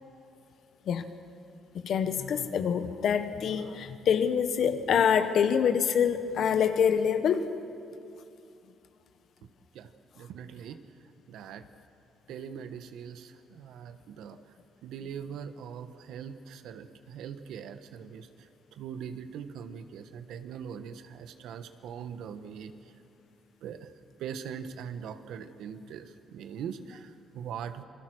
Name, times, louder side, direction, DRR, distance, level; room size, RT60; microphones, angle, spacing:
voice 1, 1.8-7.5, left 7 dB, 70° left, 10 dB, 1.4 m, -26 dB
voice 2, 10.2-10.8 11.3-11.6 12.3-14.4 14.8-18.3 18.8-22.7 23.6-23.9 24.2-27.8, right 7 dB, 85° right, 10 dB, 1.3 m, -41 dB
28.0 x 21.0 x 6.4 m, 2.6 s
cardioid pair, 90°, 0 cm